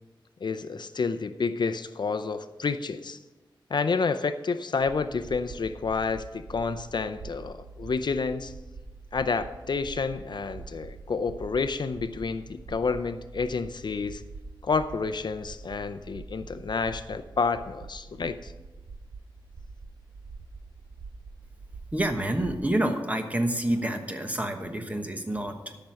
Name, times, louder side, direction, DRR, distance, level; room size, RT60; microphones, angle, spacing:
voice 1, 0.4-3.2 3.7-8.5 9.1-14.2 14.6-18.5, left 4 dB, 60° left, 11 dB, 0.5 m, -29 dB
sound 1, 4.8-22.6, right 4 dB, 60° right, 0.7 m, -45 dB
voice 2, 21.9-25.8, right 1 dB, 15° right, 5 dB, 1.1 m, -28 dB
13.0 x 5.9 x 6.3 m, 1.1 s
wide cardioid pair, 120°, 9 cm